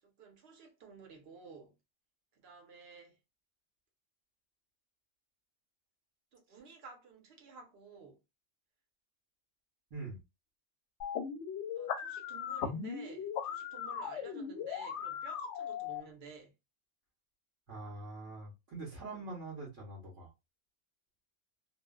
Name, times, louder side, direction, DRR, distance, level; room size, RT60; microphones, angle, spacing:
voice 1, 0.0-1.8 2.3-3.2 6.3-8.2 11.8-16.5 19.1-19.3, right 5 dB, 60° right, 1.1 m, -53 dB
sound 1, 11.0-16.0, left 7 dB, 70° left, 0.8 m, -38 dB
voice 2, 17.7-20.3, right 3 dB, 80° right, 1.5 m, -44 dB
3.0 x 2.2 x 2.3 m
omnidirectional pair, 1.3 m